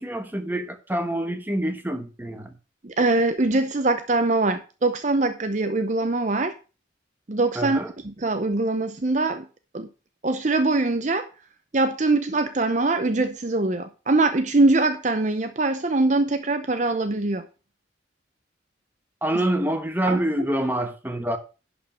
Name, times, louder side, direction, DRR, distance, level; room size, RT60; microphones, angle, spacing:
voice 1, 0.0-2.5 7.5-7.9 19.2-21.4, right 1 dB, 10° right, 1.2 m, -26 dB
voice 2, 2.8-6.5 7.3-9.5 9.7-9.9 10.2-11.3 11.7-17.5 20.1-20.2, right 2 dB, 40° right, 0.7 m, -23 dB
11.0 x 5.2 x 5.9 m
head